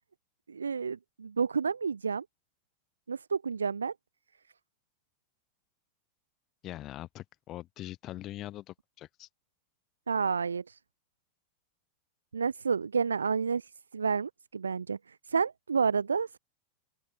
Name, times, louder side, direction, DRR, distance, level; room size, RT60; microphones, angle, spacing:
voice 1, 0.5-2.3 3.1-3.9 10.1-10.8 12.3-16.4, right 5 dB, 75° right, 0.4 m, -30 dB
voice 2, 6.6-9.3, left 14 dB, 35° left, 1.5 m, -42 dB
open air
figure-of-eight pair, 90°, 0 cm